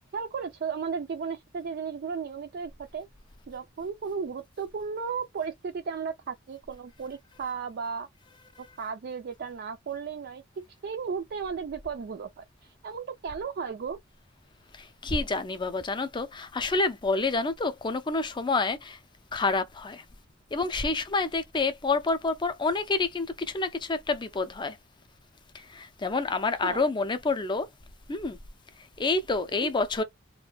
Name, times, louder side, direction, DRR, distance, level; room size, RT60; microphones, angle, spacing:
voice 1, 0.1-3.1 3.5-8.1 8.8-10.4 10.8-14.0 26.6-26.9, right 6 dB, 50° right, 0.4 m, -35 dB
voice 2, 14.8-19.0 19.3-20.0 20.5-24.8 25.5-27.7 28.1-28.4 29.0-30.0, left 3 dB, 25° left, 0.5 m, -28 dB
2.5 x 2.2 x 3.8 m
head